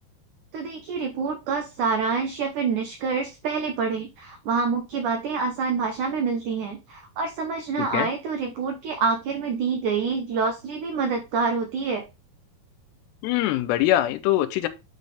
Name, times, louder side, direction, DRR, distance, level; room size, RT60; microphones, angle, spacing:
voice 1, 0.5-12.0, right 5 dB, 85° right, 1.7 m, -27 dB
voice 2, 7.8-8.1 13.2-14.7, left 14 dB, 90° left, 2.8 m, -23 dB
8.9 x 4.2 x 3.4 m
omnidirectional pair, 4.8 m